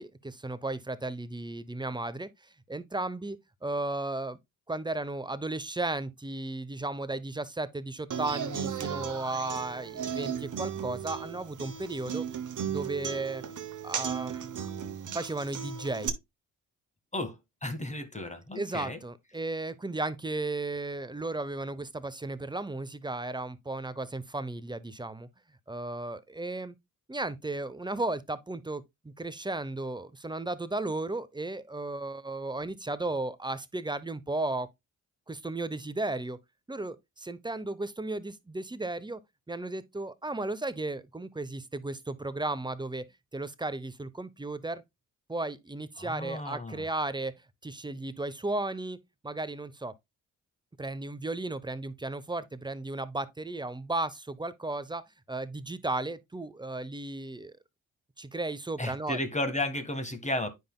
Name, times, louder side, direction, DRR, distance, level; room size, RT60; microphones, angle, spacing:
voice 1, 0.0-2.3 2.7-4.4 4.7-12.3 12.7-13.4 13.8-14.5 15.1-16.1 18.5-25.3 25.7-26.7 27.1-34.7 35.3-36.4 36.7-39.2 39.5-43.1 43.3-44.8 45.3-47.3 47.6-49.0 49.2-49.9 50.8-57.5 58.2-59.2, right 2 dB, 10° right, 0.8 m, -35 dB
Human voice / Acoustic guitar, 8.1-16.1, right 8 dB, 50° right, 1.1 m, -36 dB
voice 2, 17.1-19.0 46.0-46.9 58.8-60.5, left 1 dB, 15° left, 1.6 m, -33 dB
9.4 x 5.1 x 2.3 m
hypercardioid pair, 45°, 41 cm